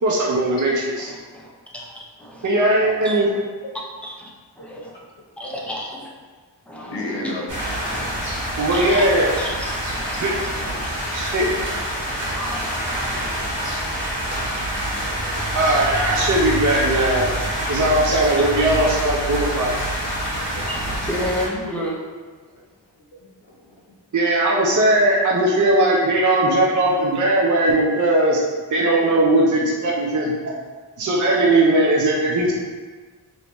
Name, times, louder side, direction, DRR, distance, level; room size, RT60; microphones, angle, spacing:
voice 1, 0.0-1.1 2.4-3.3 8.6-9.3 10.2-10.3 11.1-11.5 15.5-17.3 17.7-19.7 24.1-28.4 28.7-30.5 31.0-32.5, right 1 dB, 45° right, -3 dB, 0.6 m, -19 dB
voice 2, 1.0-2.5 3.0-3.2 4.0-4.3 4.6-4.9 5.4-6.1 6.7-7.4 7.8-8.4 8.7-9.0 9.4-10.9 11.4-11.7 12.1-13.4 17.6-17.7 18.1-18.3 20.7-22.0, equal, 5° left, -4 dB, 0.8 m, -33 dB
voice 3, 4.6-5.0 5.4-5.7 6.9-7.5 20.3-20.7 21.7-21.8 23.1-24.0 28.9-29.2, left 1 dB, 70° left, -1 dB, 0.8 m, -35 dB
sound 1, 7.5-21.5, equal, 75° right, 1.4 m, -26 dB
3.4 x 2.8 x 3.0 m, 1.4 s
cardioid pair, 40°, 43 cm